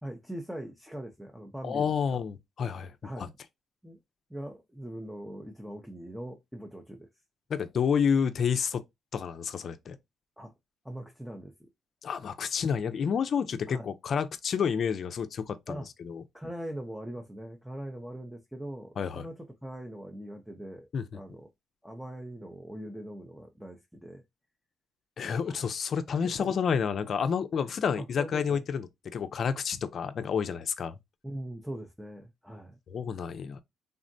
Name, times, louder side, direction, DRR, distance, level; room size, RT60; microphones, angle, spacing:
voice 1, 0.0-2.2 3.0-3.3 3.8-4.0 4.3-7.1 10.4-10.5 10.8-11.5 13.7-13.9 15.7-15.9 16.3-21.5 21.8-24.2 25.5-25.7 26.1-26.3 27.6-28.6 31.2-32.8, right 1 dB, ahead, 0.6 m, -41 dB
voice 2, 1.6-3.3 7.5-8.8 9.1-10.0 12.0-16.2 19.0-19.3 20.9-21.2 25.2-28.9 29.1-30.9 32.9-33.6, left 7 dB, 55° left, 0.4 m, -30 dB
3.6 x 2.1 x 2.6 m
cardioid pair, 90°, 0 cm